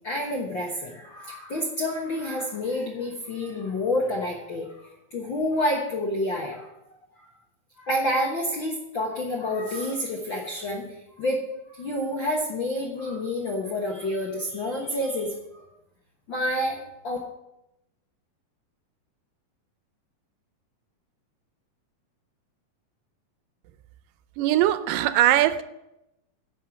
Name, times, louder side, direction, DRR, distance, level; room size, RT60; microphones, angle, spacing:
voice 1, 0.0-4.7 5.1-6.7 7.2-7.3 7.8-10.8 11.2-15.3 16.3-17.2, left 1 dB, 60° left, -1 dB, 1.2 m, -28 dB
voice 2, 24.4-25.6, right 13 dB, 85° right, 13 dB, 2.2 m, -21 dB
10.5 x 5.6 x 7.5 m, 0.88 s
omnidirectional pair, 3.9 m